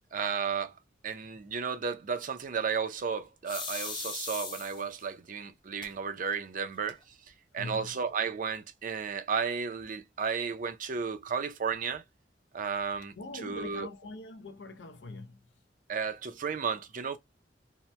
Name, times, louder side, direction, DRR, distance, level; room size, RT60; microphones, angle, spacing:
voice 1, 0.1-0.7 1.0-7.0 7.5-12.0 12.5-13.9 15.9-17.2, right 6 dB, 45° right, 0.5 m, -33 dB
sound 1, 3.5-5.0 5.8-5.9 6.3-6.4 6.7-7.3, left 4 dB, 25° left, 0.7 m, -38 dB
voice 2, 7.6-8.0 13.2-15.4, left 2 dB, 70° left, 0.5 m, -42 dB
2.9 x 2.1 x 3.1 m
head